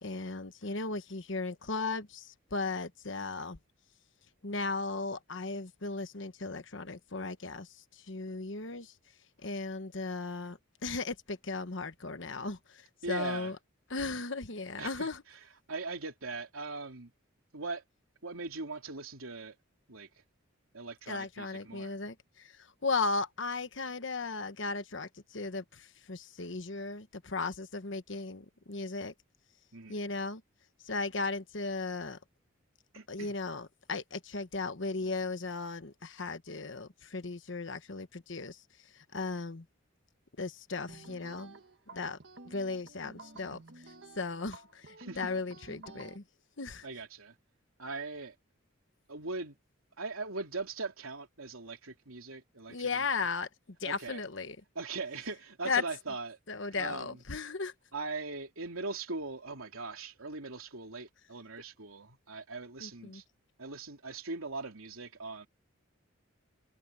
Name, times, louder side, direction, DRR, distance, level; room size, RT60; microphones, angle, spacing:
voice 1, 0.0-3.6 4.4-8.9 9.4-13.6 13.9-15.2 21.1-29.1 29.9-30.4 30.8-32.2 33.1-39.6 40.4-41.6 41.9-42.2 42.4-43.6 44.2-46.2 46.6-46.8 52.7-53.5 53.8-54.6 55.6-55.8 56.5-57.7 62.8-63.2, left 3 dB, 60° left, 1.2 m, -36 dB
voice 2, 13.0-13.5 14.8-15.4 15.7-17.1 17.5-17.8 18.2-19.6 19.9-20.1 20.7-22.0 29.7-30.1 32.9-33.3 45.0-45.3 46.8-47.3 47.8-48.3 49.1-49.6 50.0-53.1 53.8-54.2 54.7-56.4 56.8-57.2 57.9-63.2 63.6-65.5, right 3 dB, 85° right, 3.3 m, -40 dB
sound 1, 40.9-46.2, right 3 dB, 55° right, 1.5 m, -52 dB
head